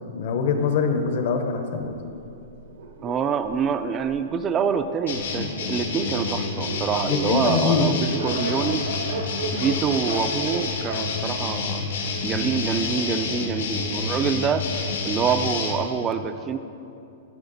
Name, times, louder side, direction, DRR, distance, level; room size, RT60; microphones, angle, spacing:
voice 1, 0.1-2.0 7.1-7.9, left 5 dB, 55° left, 6 dB, 0.8 m, -23 dB
Dog, 1.4-4.4 5.1-5.2 5.5-5.6 5.8-12.2, right 2 dB, 75° right, 1.1 m, -35 dB
voice 2, 3.0-8.8 9.5-11.8 12.2-14.6 15.0-16.6, right 6 dB, 20° right, 10 dB, 0.3 m, -26 dB
sound 1, 5.1-15.7, left 4 dB, 85° left, 1.4 m, -28 dB
12.0 x 5.8 x 4.0 m, 2.7 s
hypercardioid pair, 160°, 0 cm